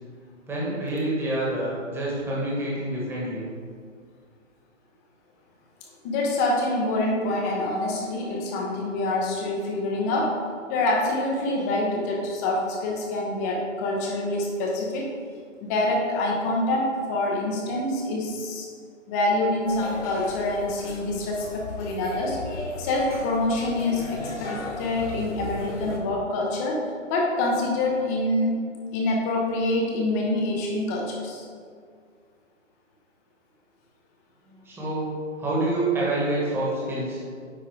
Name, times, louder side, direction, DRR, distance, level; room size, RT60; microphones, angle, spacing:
voice 1, 0.5-3.5 34.6-35.1 35.4-37.2, right 2 dB, 5° right, -6 dB, 1.3 m, -27 dB
voice 2, 6.0-10.3 10.7-15.1 15.6-18.7 19.1-22.4 22.8-26.8 27.1-28.6 28.9-31.5, left 2 dB, 15° left, -1 dB, 0.6 m, -26 dB
sound 1, 19.6-26.0, left 2 dB, 65° left, 1.8 m, -36 dB
9.6 x 3.7 x 4.8 m, 2.1 s
hypercardioid pair, 145°, 38 cm